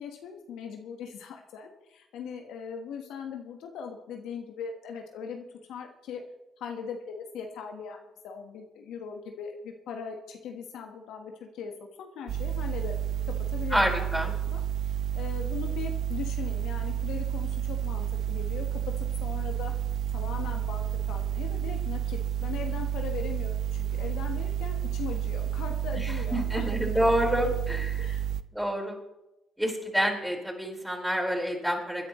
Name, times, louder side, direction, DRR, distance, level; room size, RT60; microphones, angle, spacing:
voice 1, 0.0-6.2 6.6-11.7 12.0-12.9 13.5-14.1 14.5-18.8 19.2-19.7 20.1-26.7 26.9-27.1 27.4-27.5 28.0-28.2, left 6 dB, 75° left, 4 dB, 1.4 m, -40 dB
sound 1, 12.3-28.4, right 10 dB, 65° right, 0.5 m, -30 dB
voice 2, 13.7-14.3 26.0-28.1 28.5-29.0 29.6-32.1, equal, 5° right, 0 dB, 4.6 m, -28 dB
22.5 x 10.5 x 3.1 m, 0.94 s
hypercardioid pair, 50°, 0 cm